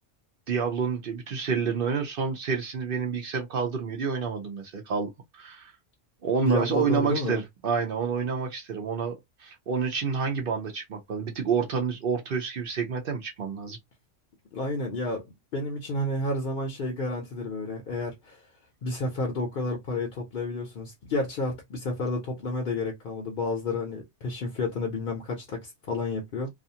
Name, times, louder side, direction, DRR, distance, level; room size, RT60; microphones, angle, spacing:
voice 1, 0.5-5.7 6.2-9.1 9.4-13.8, right 6 dB, 60° right, 0.7 m, -29 dB
voice 2, 6.4-7.4 14.5-15.3 15.5-18.4 18.8-26.5, left 2 dB, 55° left, 0.7 m, -30 dB
2.4 x 2.4 x 2.7 m
omnidirectional pair, 1.3 m